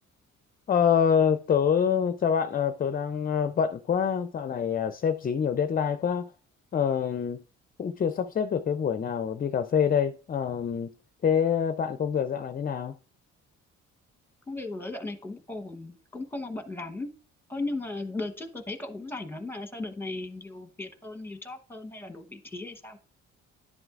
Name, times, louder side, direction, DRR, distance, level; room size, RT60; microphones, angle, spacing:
voice 1, 0.7-6.3 6.7-7.4 7.8-10.9 11.2-12.9, left 7 dB, 30° left, 0.4 m, -26 dB
voice 2, 14.5-17.1 17.5-23.0, left 2 dB, 5° left, 1.0 m, -36 dB
11.0 x 7.8 x 2.4 m
cardioid pair, 90°, 30 cm